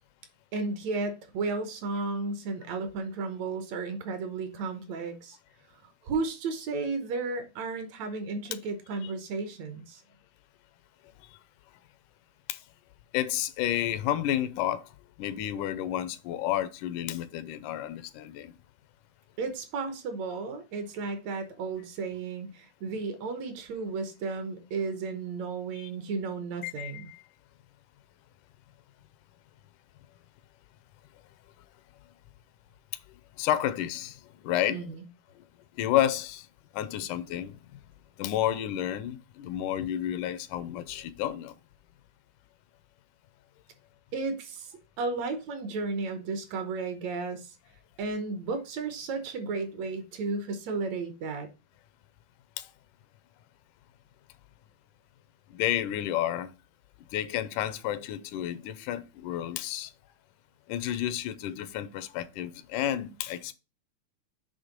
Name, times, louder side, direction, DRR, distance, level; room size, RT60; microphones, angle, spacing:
voice 1, 0.5-5.4 5.8-10.0 19.4-27.1 34.7-35.0 44.1-47.6 48.0-51.5, right 4 dB, 65° right, 2.1 m, -33 dB
voice 2, 13.1-14.9 15.2-18.5 25.7-25.9 26.6-27.2 33.4-34.9 35.4-35.5 35.8-36.5 36.7-37.6 38.2-41.5 52.6-52.7 55.5-56.5 57.1-59.9 60.7-63.5, left 12 dB, 85° left, 2.1 m, -31 dB
8.0 x 3.4 x 5.1 m
omnidirectional pair, 3.5 m